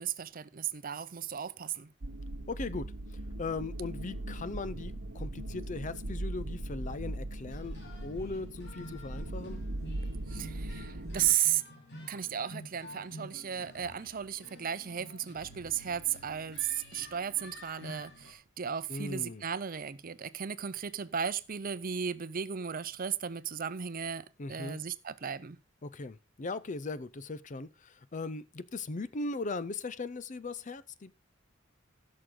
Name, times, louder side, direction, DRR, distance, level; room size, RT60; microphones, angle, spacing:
voice 1, 0.0-1.9 10.3-11.6 12.1-25.6, right 9 dB, 45° right, 0.6 m, -35 dB
sound 1, 2.0-11.3, right 1 dB, 75° right, 1.1 m, -39 dB
voice 2, 2.5-2.9 3.4-7.8 8.0-9.6 18.9-19.4 24.4-24.8 25.8-31.1, left 3 dB, 40° left, 0.6 m, -38 dB
sound 2, 7.5-18.3, left 1 dB, 55° left, 2.8 m, -50 dB
15.5 x 6.5 x 3.8 m
head